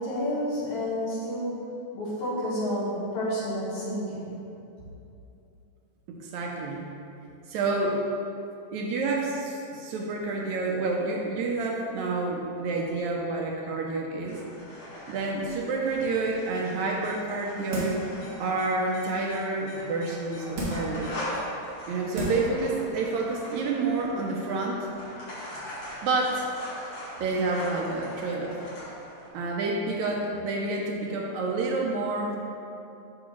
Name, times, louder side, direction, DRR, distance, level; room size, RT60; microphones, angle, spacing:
voice 1, 0.0-1.7 1.9-4.4, equal, 70° left, -7 dB, 2.7 m, -30 dB
voice 2, 6.1-6.9 7.5-8.0 8.7-14.4 15.1-18.0 18.4-21.1 21.9-24.9 26.0-26.5 27.2-28.6 29.3-32.4, right 3 dB, 80° right, 0 dB, 1.9 m, -29 dB
sound 1, 14.2-29.3, left 1 dB, 85° left, 3.4 m, -41 dB
sound 2, 17.7-18.2 18.6-18.7 20.5-21.0 21.7-21.8 22.1-22.6 22.9-23.0, equal, 55° right, 2.2 m, -32 dB
8.7 x 5.8 x 3.1 m, 2.7 s
omnidirectional pair, 3.5 m